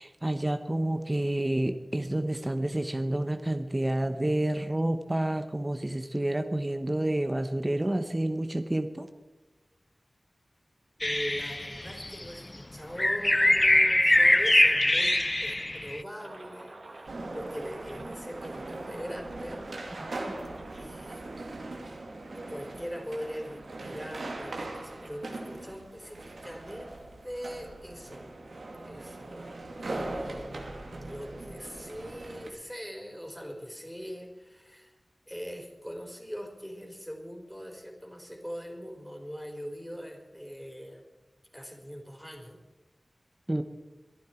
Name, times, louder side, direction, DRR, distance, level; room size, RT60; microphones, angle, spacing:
voice 1, 0.0-9.1 43.5-43.6, right 1 dB, 25° right, 8 dB, 1.1 m, -29 dB
sound 1, 11.0-12.2 13.0-16.0, left 1 dB, 30° left, 0.6 m, -23 dB
voice 2, 11.0-20.1 20.7-21.2 22.3-28.3 28.8-29.5 29.8-35.0 35.3-41.0 41.5-42.6, equal, 5° left, 2 dB, 4.5 m, -42 dB
sound 2, 16.2-25.9, right 2 dB, 65° right, 2.6 m, -51 dB
sound 3, 17.1-32.5, right 2 dB, 90° right, 2.3 m, -40 dB
22.5 x 11.5 x 4.6 m, 1.2 s
cardioid pair, 45°, 0 cm